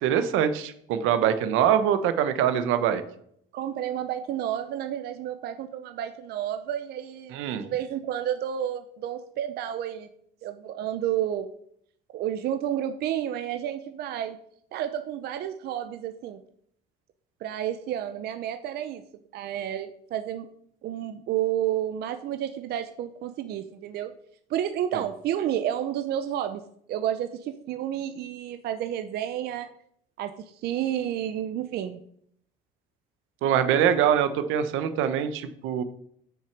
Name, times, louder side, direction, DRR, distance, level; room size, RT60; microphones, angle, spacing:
voice 1, 0.0-3.0 7.3-7.6 33.4-35.8, right 9 dB, 85° right, 11 dB, 1.1 m, -23 dB
voice 2, 3.5-10.1 10.4-11.5 12.1-14.4 14.7-16.4 17.4-19.0 19.3-20.5 20.8-24.1 24.5-26.6 26.9-29.7 30.2-32.0, right 11 dB, 55° right, 8 dB, 0.7 m, -30 dB
8.4 x 6.3 x 6.0 m, 0.67 s
cardioid pair, 175°, 20 cm